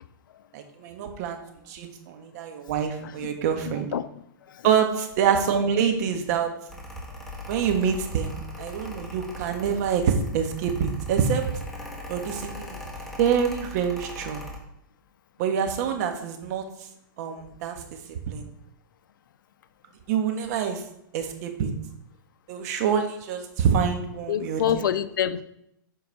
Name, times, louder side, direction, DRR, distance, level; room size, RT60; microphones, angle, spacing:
voice 1, 0.5-1.4 1.7-3.9 4.6-6.5 7.5-11.5 12.1-12.8 13.2-14.4 15.4-16.6 17.2-17.7 18.1-18.5 20.1-20.8 21.1-21.7 22.5-24.8, right 7 dB, 50° right, 5 dB, 1.4 m, -26 dB
voice 2, 3.6-4.7 24.3-25.4, left 10 dB, 70° left, 13 dB, 0.6 m, -28 dB
Mechanical fan, 6.7-14.6, left 2 dB, 5° left, 1.5 m, -39 dB
7.9 x 4.6 x 4.6 m, 0.77 s
hypercardioid pair, 130°, 11 cm